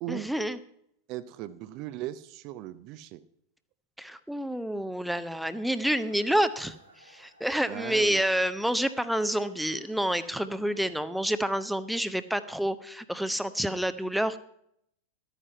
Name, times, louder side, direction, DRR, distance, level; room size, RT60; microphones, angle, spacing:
voice 1, 0.1-0.6 4.0-6.7 7.0-14.4, right 1 dB, ahead, 12 dB, 0.6 m, -28 dB
voice 2, 1.1-3.2 7.7-8.2, right 14 dB, 40° right, 13 dB, 0.6 m, -38 dB
sound 1, 6.0-11.2, right 1 dB, 90° right, 2.8 m, -57 dB
12.5 x 9.2 x 5.6 m, 0.73 s
figure-of-eight pair, 90°, 0 cm